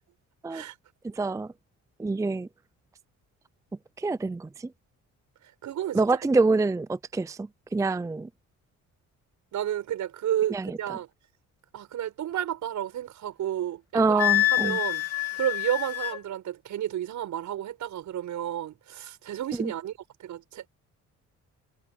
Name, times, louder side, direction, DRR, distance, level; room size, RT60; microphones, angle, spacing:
voice 1, 1.0-1.5 2.0-2.5 4.0-4.7 5.9-8.3 10.5-10.8 13.9-14.8 19.6-19.7, right 3 dB, 10° right, 0.5 m, -26 dB
voice 2, 5.6-6.1 9.5-11.1 11.7-14.2 14.5-15.0 15.4-19.9 20.2-20.7, right 11 dB, 75° right, 7.1 m, -31 dB
Wind instrument woodwind instrument, 14.2-16.2, left 18 dB, 50° left, 3.3 m, -26 dB
cardioid pair, 90°, 30 cm